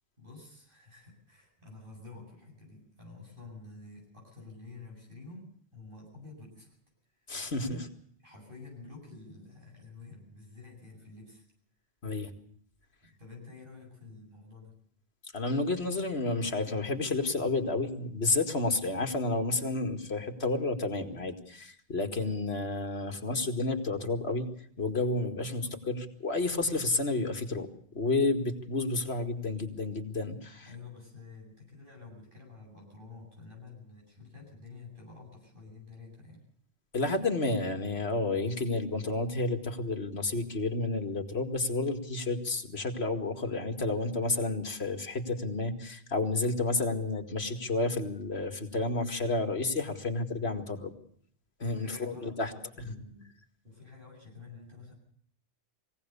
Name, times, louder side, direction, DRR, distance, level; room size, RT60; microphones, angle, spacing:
voice 1, 0.2-6.8 7.2-7.3 7.5-7.9 8.2-11.4 13.0-14.8 25.5-26.0 30.6-36.4 51.6-53.3 53.6-54.9, left 3 dB, 55° right, -2 dB, 8.4 m, -49 dB
voice 2, 7.3-7.8 12.0-12.3 15.3-24.5 24.8-30.7 36.9-50.9 51.6-52.5, left 2 dB, 80° left, 5 dB, 2.3 m, -31 dB
22.5 x 17.0 x 6.9 m, 0.63 s
omnidirectional pair, 1.1 m